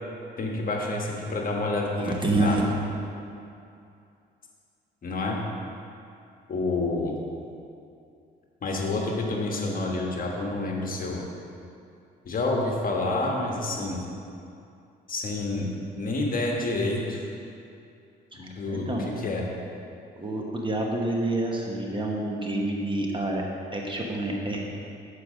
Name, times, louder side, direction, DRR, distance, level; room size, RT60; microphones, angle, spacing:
voice 1, 0.4-2.6 5.0-5.4 6.5-7.2 8.6-11.2 12.2-14.0 15.1-17.2 18.3-19.4, left 2 dB, 45° left, -1 dB, 1.3 m, -28 dB
voice 2, 1.9-2.6 18.3-19.1 20.1-23.4 23.7-24.6, right 2 dB, 25° right, -1 dB, 1.1 m, -28 dB
7.0 x 4.7 x 6.3 m, 2.6 s
cardioid pair, 90°, 20 cm